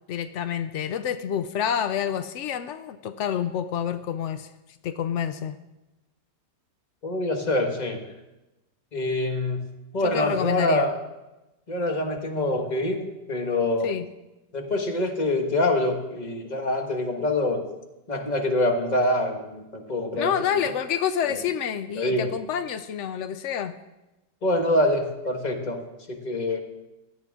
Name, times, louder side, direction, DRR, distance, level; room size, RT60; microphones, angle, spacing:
voice 1, 0.1-4.5 4.8-5.6 10.0-10.9 13.8-14.1 20.1-23.7, left 9 dB, 85° left, 11 dB, 0.6 m, -28 dB
voice 2, 7.0-8.0 8.9-9.7 9.9-11.0 11.7-13.9 14.5-17.6 18.1-20.6 21.3-21.4 22.0-22.3 24.4-26.6, left 1 dB, 25° left, 4 dB, 1.3 m, -25 dB
16.0 x 11.5 x 3.6 m, 1.0 s
omnidirectional pair, 1.9 m